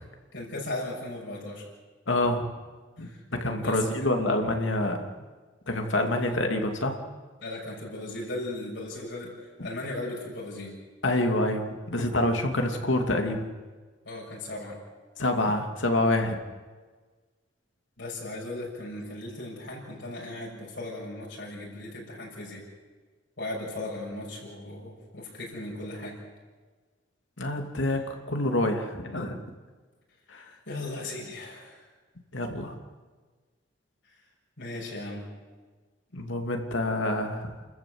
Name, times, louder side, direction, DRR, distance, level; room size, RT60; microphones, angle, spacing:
voice 1, 0.3-1.6 3.0-3.2 3.6-3.8 6.2-6.4 7.4-10.7 14.0-14.8 18.0-22.6 23.4-26.2 30.7-31.8 34.6-35.2, left 2 dB, 70° left, -3 dB, 6.7 m, -37 dB
voice 2, 2.1-2.5 3.0-5.1 5.7-7.0 11.0-13.5 15.2-16.4 27.4-29.4 30.3-30.4 32.3-32.8 36.1-37.7, left 1 dB, 85° left, 4 dB, 2.7 m, -27 dB
29.0 x 14.0 x 8.0 m, 1.4 s
head